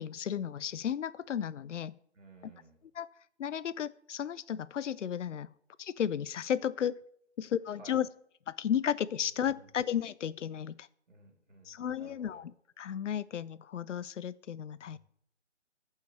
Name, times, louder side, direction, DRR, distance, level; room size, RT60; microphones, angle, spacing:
voice 1, 0.0-1.9 3.0-3.1 3.4-5.5 5.8-7.0 7.4-8.1 8.5-10.9 11.7-12.5 12.8-15.0, left 9 dB, 85° left, 20 dB, 0.5 m, -34 dB
voice 2, 2.1-2.8 7.6-8.0 9.2-9.7 11.1-12.4 14.7-15.0, right 3 dB, 80° right, 1 dB, 2.9 m, -57 dB
14.5 x 5.6 x 3.1 m, 0.69 s
figure-of-eight pair, 160°, 36 cm